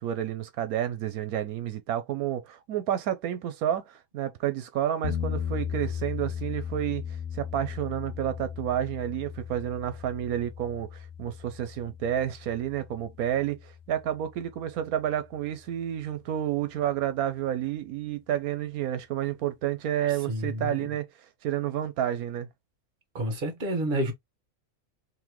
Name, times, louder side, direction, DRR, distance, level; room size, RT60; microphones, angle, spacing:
voice 1, 0.0-7.0 7.3-21.1 21.4-22.5, right 11 dB, 85° right, 1.1 m, -30 dB
sound 1, 5.0-15.1, left 8 dB, 75° left, 1.2 m, -37 dB
voice 2, 20.1-20.9 23.1-24.1, right 1 dB, 40° right, 1.3 m, -30 dB
3.9 x 3.1 x 3.0 m
omnidirectional pair, 1.5 m